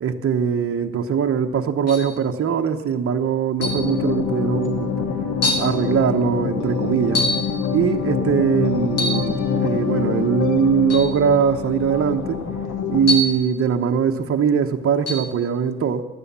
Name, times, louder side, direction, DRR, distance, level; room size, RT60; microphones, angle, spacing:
voice 1, 0.0-4.9 5.6-7.2 7.7-12.4 12.9-16.0, right 7 dB, 50° right, 5 dB, 1.0 m, -21 dB
sound 1, 1.9-2.2 3.6-3.9 4.7-4.8 5.4-5.7 7.1-7.5 8.9-9.3 10.9-11.1 13.1-13.5 15.1-15.3, left 1 dB, 55° left, 2.3 m, -24 dB
sound 2, 3.6-13.2, left 6 dB, 85° left, 1.3 m, -25 dB
13.0 x 9.9 x 6.9 m, 1.2 s
cardioid pair, 90°, 30 cm